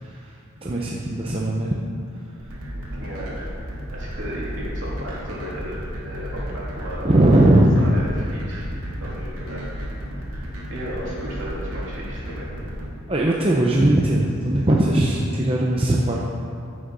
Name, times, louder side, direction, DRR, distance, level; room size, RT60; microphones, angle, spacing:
voice 1, 0.6-1.7 7.0-7.7 13.1-16.2, right 1 dB, 25° right, -3 dB, 0.8 m, -19 dB
sound 1, 2.4-12.9, equal, 90° right, 2.6 m, -33 dB
voice 2, 3.0-3.5 3.9-5.8 6.0-7.1 7.4-7.5 7.8-8.6 9.0-9.6 10.2-10.3 10.7-12.5, equal, 60° right, -6 dB, 3.3 m, -35 dB
15.0 x 6.6 x 5.5 m, 2.4 s
head